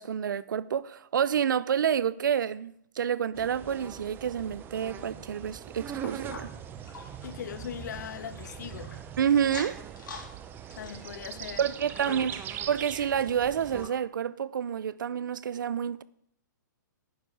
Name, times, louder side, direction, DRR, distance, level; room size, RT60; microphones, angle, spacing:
voice 1, 0.0-6.5 9.2-9.8 11.6-12.3 12.7-16.0, right 8 dB, 75° right, 0.6 m, -28 dB
sound 1, 3.3-13.9, right 9 dB, 20° right, 0.7 m, -41 dB
sound 2, 6.0-9.0 9.4-10.3 10.6-13.0 13.5-13.6 13.8-13.9 14.6-14.7, left 4 dB, 85° left, 3.4 m, -46 dB
voice 2, 7.2-8.9 10.8-11.6 12.0-12.2, left 9 dB, 65° left, 1.0 m, -39 dB
12.0 x 9.7 x 4.8 m
hypercardioid pair, 140°, 10 cm